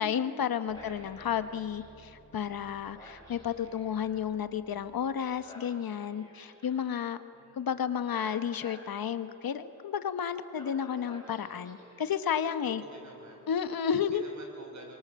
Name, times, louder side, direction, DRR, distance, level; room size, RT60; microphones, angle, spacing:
voice 1, 0.0-7.2 7.6-12.8 13.5-14.2, left 8 dB, 85° left, 11 dB, 1.2 m, -32 dB
sound 1, 0.7-7.0 8.1-9.0 10.5-12.3 13.5-13.6, equal, 10° left, 6.0 m, -53 dB
voice 2, 0.8-1.2 7.3-7.8 11.3-11.6 12.6-13.5 13.8-14.9, right 2 dB, 55° right, 2 dB, 5.0 m, -51 dB
25.0 x 23.5 x 7.5 m, 2.8 s
wide cardioid pair, 165°, 35 cm